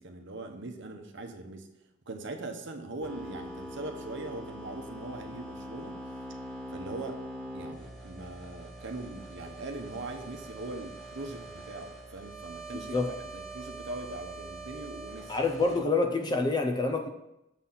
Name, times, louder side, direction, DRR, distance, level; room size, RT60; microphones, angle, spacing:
voice 1, 0.0-1.7 2.1-5.9 6.7-7.2 7.5-13.0 13.3-15.4, right 2 dB, 60° right, 5 dB, 0.9 m, -41 dB
sound 1, 3.0-15.8, right 1 dB, 5° left, 1.5 m, -43 dB
voice 2, 12.7-13.1 15.3-17.1, left 3 dB, 20° left, 4 dB, 0.6 m, -27 dB
7.3 x 4.1 x 5.7 m, 0.86 s
head